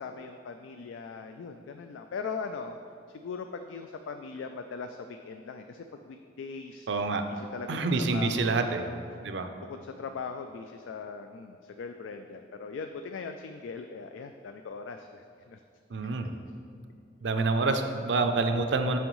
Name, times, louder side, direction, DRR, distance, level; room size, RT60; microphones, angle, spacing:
voice 1, 0.0-2.8 3.1-6.9 7.3-8.9 9.7-15.6 16.2-16.3, left 5 dB, 85° left, 6 dB, 0.3 m, -40 dB
voice 2, 6.9-7.2 7.7-8.8 9.2-9.5 15.9-16.3 17.2-19.0, right 3 dB, 65° right, 7 dB, 0.5 m, -27 dB
8.9 x 6.2 x 3.1 m, 2.4 s
head